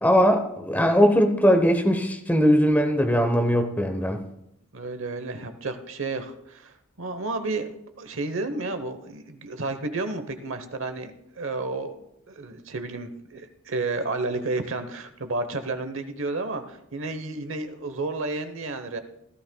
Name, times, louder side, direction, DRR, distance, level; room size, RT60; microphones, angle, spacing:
voice 1, 0.0-4.2, equal, 10° left, 5 dB, 0.9 m, -20 dB
voice 2, 4.7-11.9 12.3-19.0, right 3 dB, 60° right, 10 dB, 1.0 m, -31 dB
17.0 x 12.0 x 2.3 m, 0.82 s
head